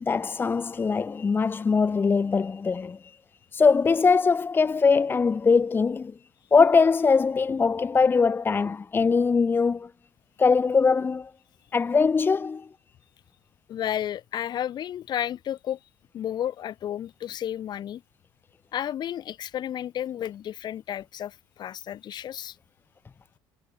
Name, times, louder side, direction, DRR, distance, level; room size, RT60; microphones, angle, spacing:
voice 1, 0.0-3.0 3.5-6.1 6.5-9.9 10.4-11.3 11.7-12.7, left 5 dB, 25° left, 0.7 m, -22 dB
voice 2, 13.7-15.8 16.1-18.0 18.7-22.6, left 10 dB, 50° left, 2.5 m, -32 dB
cardioid pair, 110°, 9 cm